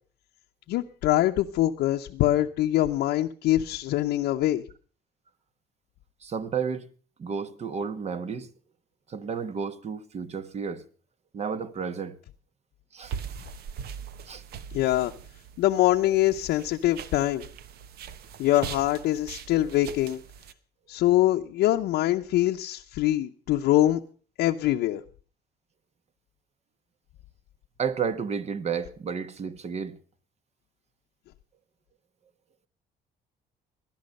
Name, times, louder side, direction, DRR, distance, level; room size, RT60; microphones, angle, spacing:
voice 1, 0.7-4.6 14.7-15.1 15.6-17.4 18.4-20.2 20.9-24.0 24.4-25.0, left 14 dB, 80° left, 0.7 m, -24 dB
voice 2, 6.2-6.9 7.2-8.5 9.1-10.8 11.3-12.2 12.9-13.1 14.3-14.4 27.8-30.0, right 6 dB, 40° right, 1.2 m, -32 dB
sound 1, 13.0-20.5, right 8 dB, 70° right, 1.1 m, -41 dB
18.0 x 12.0 x 5.3 m
cardioid pair, 110°, 17 cm